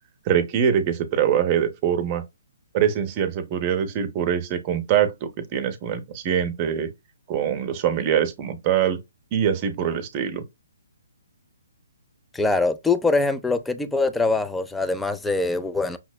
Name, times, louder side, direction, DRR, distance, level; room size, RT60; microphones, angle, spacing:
voice 1, 0.3-2.2 2.7-6.9 7.3-9.0 9.3-10.4, right 9 dB, 30° right, 0.7 m, -23 dB
voice 2, 12.3-16.0, left 3 dB, 5° left, 0.4 m, -23 dB
5.7 x 2.0 x 2.2 m
figure-of-eight pair, 135°, 0 cm